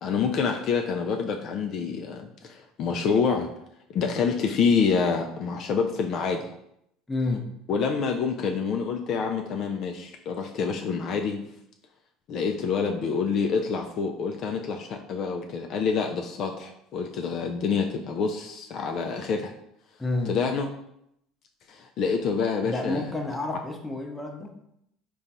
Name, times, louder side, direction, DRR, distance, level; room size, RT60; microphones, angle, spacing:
voice 1, 0.0-3.5 3.9-6.5 7.7-11.4 12.3-19.5 20.3-20.7 21.7-23.1, left 5 dB, 55° left, 3 dB, 0.4 m, -27 dB
voice 2, 7.1-7.5 20.0-20.4 22.6-24.6, left 2 dB, 15° left, 2 dB, 0.8 m, -30 dB
3.8 x 2.3 x 4.0 m, 0.77 s
hypercardioid pair, 75°, 0 cm